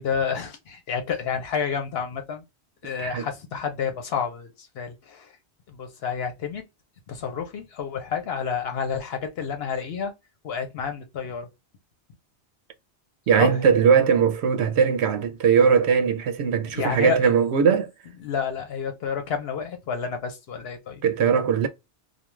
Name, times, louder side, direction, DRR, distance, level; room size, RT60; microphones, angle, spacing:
voice 1, 0.0-2.4 2.8-5.3 5.7-6.6 7.1-10.1 10.4-11.5 13.4-13.5 16.7-17.3 18.2-21.0, left 6 dB, 70° left, 1.0 m, -30 dB
voice 2, 13.3-17.9 21.0-21.7, right 6 dB, 80° right, 0.8 m, -20 dB
2.3 x 2.3 x 3.0 m
omnidirectional pair, 1.1 m